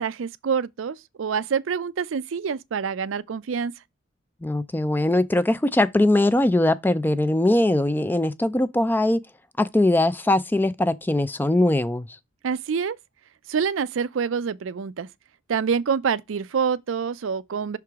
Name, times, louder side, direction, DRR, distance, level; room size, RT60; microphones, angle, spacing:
voice 1, 0.0-3.7 12.4-13.0 13.5-15.1 15.5-17.8, right 6 dB, 80° right, 0.4 m, -26 dB
voice 2, 4.4-9.2 9.6-12.1, left 1 dB, 10° left, 0.4 m, -21 dB
5.8 x 4.7 x 3.5 m
head